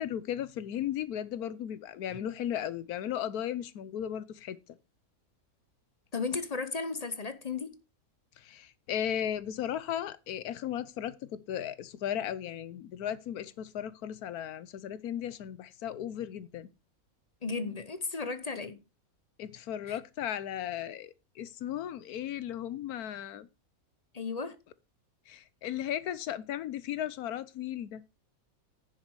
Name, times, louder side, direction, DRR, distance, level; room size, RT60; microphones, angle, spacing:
voice 1, 0.0-4.8 8.4-16.7 19.4-23.5 25.3-28.1, left 10 dB, 85° left, 1.3 m, -36 dB
voice 2, 6.1-7.8 17.4-18.8 19.9-20.0 24.1-24.6, left 4 dB, 35° left, 0.6 m, -35 dB
10.5 x 7.2 x 4.7 m
omnidirectional pair, 1.5 m